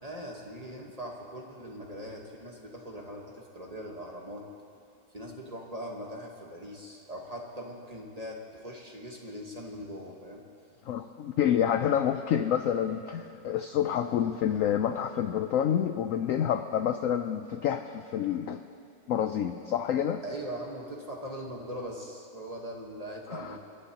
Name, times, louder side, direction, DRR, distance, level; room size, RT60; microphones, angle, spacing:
voice 1, 0.0-4.5 5.1-10.4 20.2-23.6, equal, 25° right, -1 dB, 1.2 m, -41 dB
voice 2, 10.9-18.6 19.1-20.2 23.3-23.6, left 9 dB, 70° left, 8 dB, 0.7 m, -28 dB
29.0 x 12.0 x 2.9 m, 2.5 s
omnidirectional pair, 1.8 m